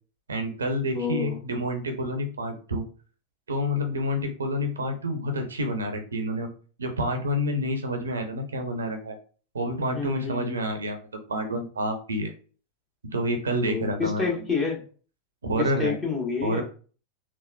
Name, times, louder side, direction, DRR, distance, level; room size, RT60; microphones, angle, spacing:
voice 1, 0.3-2.8 3.5-6.5 6.8-9.2 9.5-11.0 11.3-12.3 13.1-14.3 15.4-15.9 16.4-16.6, equal, 70° right, 6 dB, 0.6 m, -28 dB
voice 2, 0.9-1.4 9.9-10.6 13.7-14.8 15.6-16.6, left 5 dB, 20° left, -1 dB, 1.1 m, -28 dB
3.5 x 2.1 x 2.3 m, 0.39 s
figure-of-eight pair, 90°, 0 cm